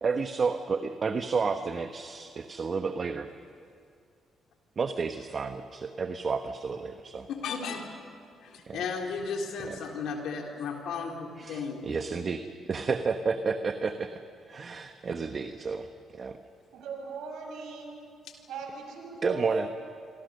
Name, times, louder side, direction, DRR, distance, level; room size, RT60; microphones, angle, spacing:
voice 1, 0.0-3.3 4.8-7.3 8.7-8.8 9.6-9.8 11.4-12.4 12.7-14.2 14.5-15.9 16.1-16.4 19.2-19.7, right 5 dB, 40° right, 7 dB, 1.1 m, -31 dB
voice 2, 7.3-7.9 8.4-11.8, left 5 dB, 80° left, 1 dB, 3.7 m, -34 dB
voice 3, 16.7-18.0 18.5-19.7, right 4 dB, 80° right, 2 dB, 6.5 m, -39 dB
27.0 x 25.5 x 6.6 m, 2.3 s
cardioid pair, 90°, 0 cm